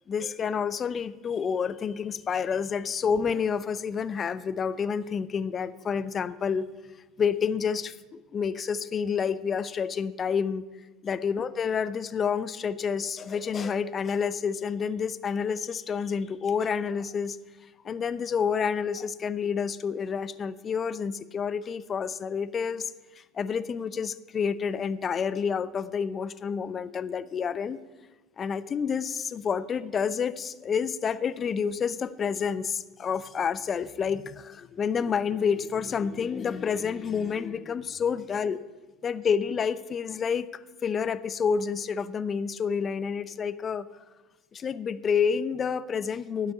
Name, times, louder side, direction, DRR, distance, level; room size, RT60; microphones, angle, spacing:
voice 1, 0.1-6.7 7.2-10.7 11.0-17.4 17.8-22.9 23.2-27.8 28.4-38.6 39.0-43.9 44.5-46.5, left 6 dB, 35° left, 15 dB, 0.7 m, -29 dB
12.5 x 5.8 x 8.8 m, 1.2 s
hypercardioid pair, 75°, 0 cm